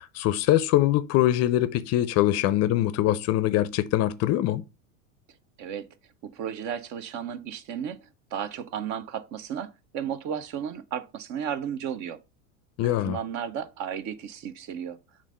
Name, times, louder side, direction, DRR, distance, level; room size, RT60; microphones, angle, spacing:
voice 1, 0.0-4.6 12.8-13.2, left 14 dB, 40° left, 0.5 m, -23 dB
voice 2, 6.2-8.0 8.3-12.2 12.8-15.0, right 8 dB, 45° right, 0.7 m, -34 dB
7.1 x 2.6 x 5.3 m
hypercardioid pair, 110°, 41 cm